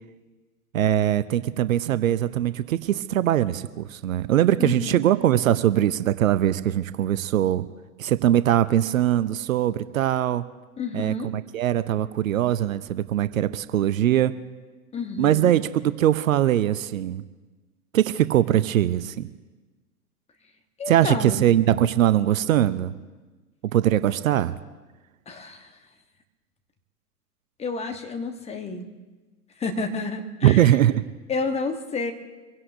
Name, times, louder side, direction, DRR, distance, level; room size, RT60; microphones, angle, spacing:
voice 1, 0.7-7.6 8.0-10.4 10.9-14.3 15.2-17.2 17.9-19.3 20.9-22.9 23.6-24.6 30.4-31.0, right 12 dB, 60° right, 14 dB, 0.7 m, -21 dB
voice 2, 4.6-5.0 10.8-11.3 14.9-15.5 20.8-21.5 25.3-25.7 27.6-28.8 29.6-30.6 31.3-32.1, left 4 dB, 15° left, 5 dB, 1.2 m, -30 dB
25.5 x 16.5 x 2.7 m, 1.2 s
figure-of-eight pair, 110°, 47 cm